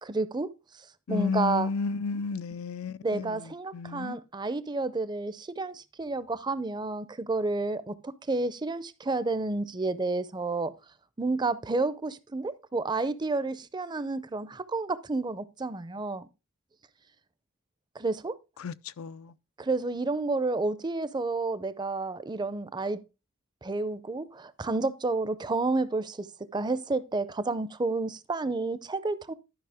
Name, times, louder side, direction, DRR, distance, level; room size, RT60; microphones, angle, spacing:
voice 1, 0.0-0.5 1.1-1.7 3.0-10.7 11.2-16.3 17.9-18.4 19.6-23.0 23.6-29.3, right 3 dB, 20° right, 0.5 m, -30 dB
voice 2, 1.1-3.4 3.7-4.2 18.6-19.3, left 4 dB, 80° left, 0.5 m, -32 dB
12.0 x 5.5 x 3.5 m
head